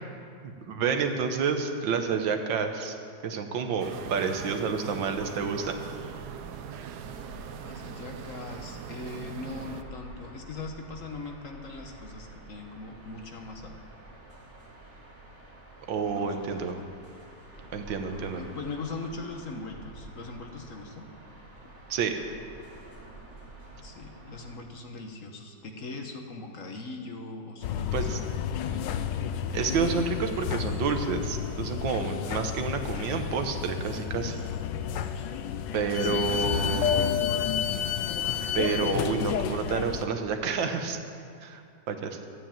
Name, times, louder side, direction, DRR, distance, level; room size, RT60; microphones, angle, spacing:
voice 1, 0.4-3.0 3.2-5.8 15.9-16.8 17.7-18.4 21.9-22.2 27.9-28.2 29.5-34.4 35.7-37.1 38.5-41.0 41.4-41.6 41.9-42.3, right 5 dB, 90° right, 6 dB, 1.8 m, -29 dB
sound 1, 3.8-9.8, right 8 dB, 65° right, 1.1 m, -41 dB
sound 2, 5.1-24.6, right 2 dB, 40° right, 2.4 m, -48 dB
voice 2, 7.6-13.7 16.0-17.0 18.4-21.1 21.6-21.8 23.8-28.3 28.6-29.1 36.0-36.8, left 3 dB, 50° left, 3 dB, 1.4 m, -40 dB
sound 3, 27.6-40.1, left 8 dB, 75° left, 1.3 m, -30 dB
13.0 x 9.2 x 8.9 m, 2.4 s
omnidirectional pair, 2.0 m